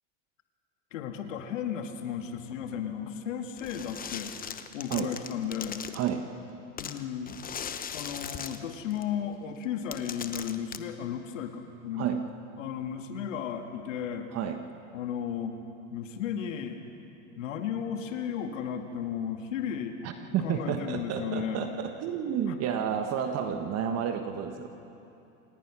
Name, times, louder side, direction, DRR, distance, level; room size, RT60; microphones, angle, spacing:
voice 1, 0.9-4.3 4.7-5.8 6.8-7.4 7.9-12.2 12.6-14.3 14.9-15.6 15.9-16.9 17.4-20.0 20.4-21.7 22.5-22.6 23.8-24.0, left 8 dB, 80° left, 5 dB, 1.9 m, -34 dB
sound 1, 3.6-6.1 6.8-9.0 9.6-9.7 9.9-10.8, left 8 dB, 25° left, 1.0 m, -39 dB
voice 2, 5.9-6.3 12.0-12.2 14.3-14.6 20.0-24.7, right 8 dB, 40° right, 6 dB, 1.5 m, -31 dB
28.0 x 18.0 x 6.2 m, 2.8 s
hypercardioid pair, 105°, 38 cm